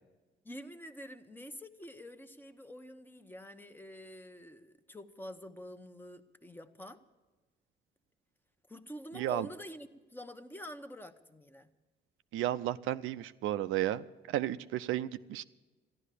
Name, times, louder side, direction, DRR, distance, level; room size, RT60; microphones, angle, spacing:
voice 1, 0.4-7.0 8.7-11.7, equal, 10° left, 8 dB, 0.9 m, -47 dB
voice 2, 9.1-9.5 12.3-15.4, right 13 dB, 90° right, 11 dB, 0.5 m, -33 dB
13.0 x 11.5 x 8.3 m, 1.2 s
cardioid pair, 90°, 20 cm